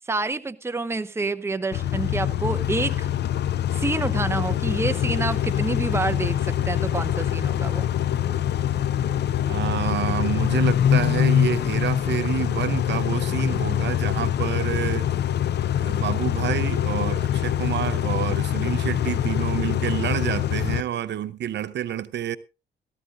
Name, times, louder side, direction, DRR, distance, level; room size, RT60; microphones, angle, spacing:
voice 1, 0.1-3.1 3.7-7.9, right 3 dB, 15° right, 0.8 m, -28 dB
Car / Idling / Accelerating revving vroom, 1.7-20.8, left 10 dB, 60° left, 0.6 m, -24 dB
sound 1, 3.8-19.7, left 1 dB, 25° left, 7.9 m, -52 dB
voice 2, 9.5-15.1 15.8-22.4, right 11 dB, 60° right, 0.8 m, -28 dB
17.5 x 14.0 x 2.5 m
cardioid pair, 90°, 20 cm